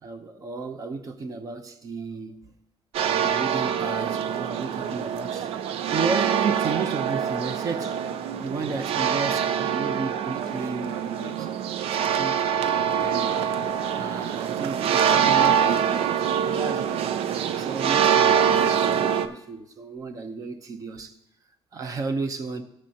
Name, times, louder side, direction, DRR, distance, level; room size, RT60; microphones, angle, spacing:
voice 1, 0.0-2.5 3.0-5.5 5.9-8.1 8.4-11.5 12.0-12.5 13.0-13.4 13.9-17.1 17.5-21.1 21.7-22.6, right 4 dB, 35° right, 0.8 m, -33 dB
sound 1, 2.9-19.3, right 8 dB, 80° right, 0.6 m, -24 dB
18.5 x 6.4 x 2.9 m
cardioid pair, 175°, 10 cm